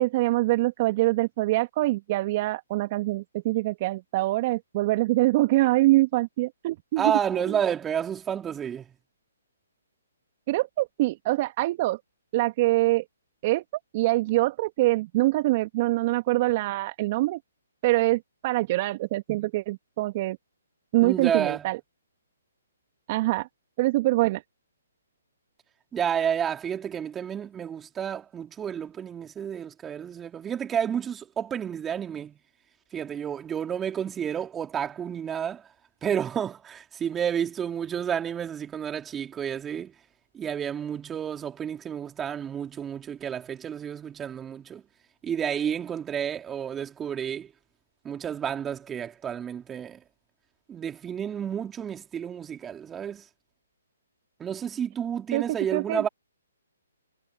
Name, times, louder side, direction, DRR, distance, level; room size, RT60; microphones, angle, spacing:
voice 1, 0.0-7.6 10.5-12.0 12.3-13.0 13.4-13.6 13.9-17.4 17.8-20.4 20.9-21.8 23.1-23.5 23.8-24.4 55.3-55.4 55.7-56.1, right 19 dB, 35° right, 2.0 m, -24 dB
voice 2, 7.0-8.8 21.0-21.6 25.9-32.4 32.9-35.6 36.0-39.9 40.3-44.8 45.2-47.5 48.0-50.0 50.7-53.2 54.4-56.1, right 8 dB, 15° right, 3.0 m, -30 dB
figure-of-eight pair, 135°, 0 cm